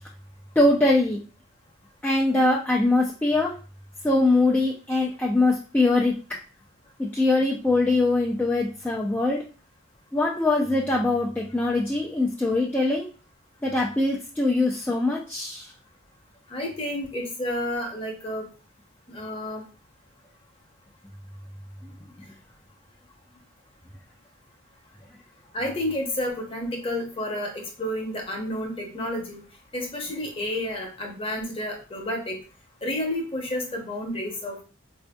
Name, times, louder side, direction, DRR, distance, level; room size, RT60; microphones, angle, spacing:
voice 1, 0.6-1.2 2.0-3.5 4.0-6.1 7.0-9.4 10.1-13.1 13.6-15.7, left 2 dB, 10° left, -3 dB, 0.3 m, -22 dB
voice 2, 16.5-18.4 19.1-19.6 25.5-27.5 27.8-29.4 29.7-32.4 32.8-34.6, left 1 dB, 25° left, 1 dB, 0.8 m, -30 dB
4.4 x 2.5 x 2.2 m, 0.36 s
head